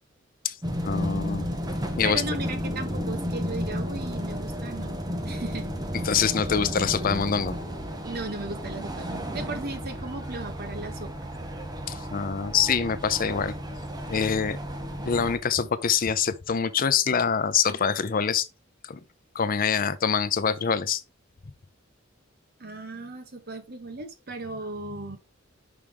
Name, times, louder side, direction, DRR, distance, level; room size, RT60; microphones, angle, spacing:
sound 1, 0.6-15.4, equal, 20° right, 1.1 m, -33 dB
voice 1, 0.8-1.5 1.9-2.2 6.0-7.6 11.9-13.5 14.1-14.6 15.0-18.5 18.8-19.0 19.3-21.0, left 6 dB, 45° left, 0.6 m, -25 dB
voice 2, 2.0-5.7 8.0-11.3 22.6-25.2, right 3 dB, 50° right, 1.3 m, -36 dB
6.0 x 5.0 x 3.5 m
head